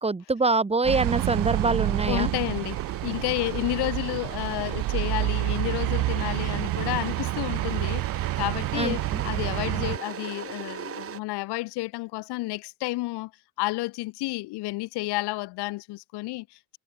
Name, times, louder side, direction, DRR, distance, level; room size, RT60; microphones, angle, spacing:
voice 1, 0.0-2.3 8.7-9.2, right 3 dB, 15° right, 5.4 m, -25 dB
sound 1, 0.8-10.0, right 17 dB, 50° right, 1.2 m, -28 dB
sound 2, 1.0-11.2, right 8 dB, 30° right, 3.7 m, -39 dB
voice 2, 2.1-13.3 13.6-16.8, left 21 dB, 65° left, 5.6 m, -31 dB
supercardioid pair, 120°, 42 cm